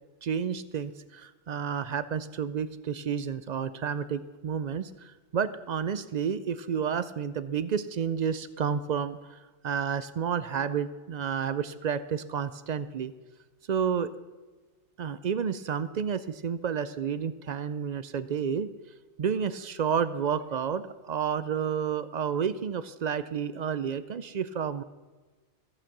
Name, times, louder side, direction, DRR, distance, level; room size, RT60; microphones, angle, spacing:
voice 1, 0.2-9.4 9.6-13.1 13.7-14.1 15.0-18.7 19.2-24.8, right 7 dB, 60° right, 15 dB, 0.4 m, -30 dB
14.0 x 8.7 x 6.0 m, 1.3 s
omnidirectional pair, 1.2 m